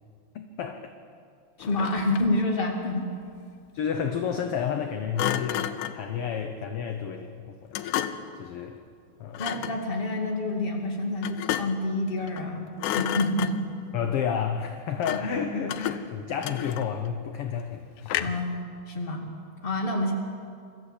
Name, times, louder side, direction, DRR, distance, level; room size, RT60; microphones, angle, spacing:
voice 1, 0.3-0.9 3.7-7.7 8.4-8.8 9.2-9.4 13.9-18.4, left 7 dB, 65° left, 6 dB, 1.5 m, -31 dB
Thump thud, 1.6-2.4 5.2-6.1 7.7-8.4 9.3-9.8 11.2-11.9 12.3-12.5 12.8-13.8 15.0-15.4 15.7-17.1 18.1-18.5, left 11 dB, 85° left, 2.2 m, -31 dB
voice 2, 1.6-3.1 9.4-13.6 15.1-15.7 18.2-18.6 18.9-19.3 19.6-20.1, left 2 dB, 20° left, 2 dB, 2.1 m, -28 dB
23.5 x 14.0 x 8.3 m, 2.4 s
omnidirectional pair, 3.4 m